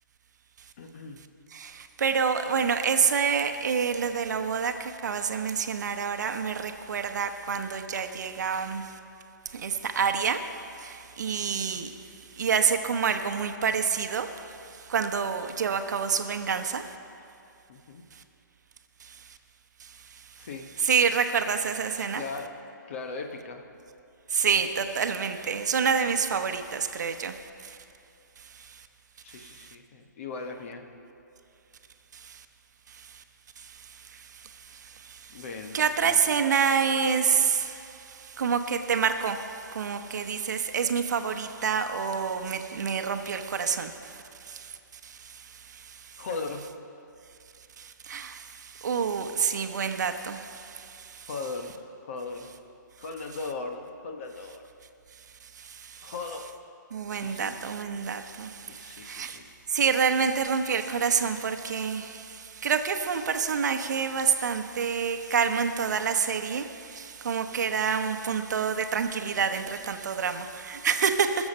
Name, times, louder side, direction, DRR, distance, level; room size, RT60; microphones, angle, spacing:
voice 1, 0.8-1.2 17.7-18.0 20.4-20.7 22.0-22.5 22.9-23.6 29.2-30.8 35.3-36.2 46.2-46.6 51.3-52.5 53.0-54.6 56.0-56.5 57.2-57.5 58.7-59.5, left 4 dB, 40° left, 4 dB, 1.1 m, -38 dB
voice 2, 1.5-8.9 9.5-10.5 10.8-11.9 12.4-14.5 14.9-16.8 19.0-19.1 19.8-19.9 20.8-22.2 24.3-27.4 27.6-27.8 28.6-28.8 32.2-32.4 33.0-33.1 34.1-34.2 34.7-35.4 35.7-44.2 44.4-44.8 45.0-45.4 45.7-46.0 47.8-51.3 55.6-56.1 56.9-59.4 59.7-71.5, right 6 dB, 60° right, 7 dB, 0.9 m, -28 dB
20.0 x 7.2 x 5.4 m, 2.7 s
hypercardioid pair, 165°, 10 cm